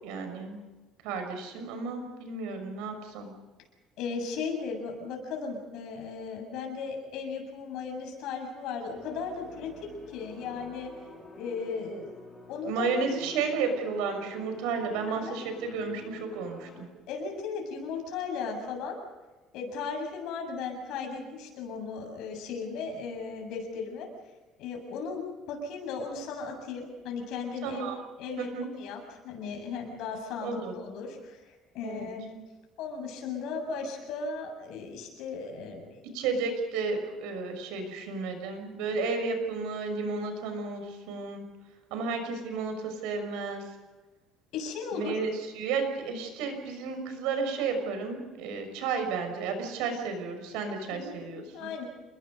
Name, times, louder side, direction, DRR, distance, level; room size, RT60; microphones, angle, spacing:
voice 1, 0.0-0.6 1.0-3.3 12.7-16.9 27.6-28.0 28.4-28.7 30.4-30.7 31.8-32.1 36.1-41.4 41.9-43.6 44.9-51.7, right 4 dB, 90° right, 6 dB, 6.2 m, -32 dB
voice 2, 4.0-10.9 11.3-12.2 12.5-12.9 15.1-15.4 17.1-19.0 19.5-24.1 24.6-27.9 28.2-31.4 31.7-32.3 32.8-36.0 44.5-45.1 50.9-51.2 51.5-51.8, left 5 dB, 60° left, 2 dB, 7.6 m, -36 dB
sound 1, 8.9-16.9, left 1 dB, 5° left, 4.9 m, -48 dB
29.5 x 21.5 x 5.4 m, 1.2 s
cardioid pair, 165°, 0 cm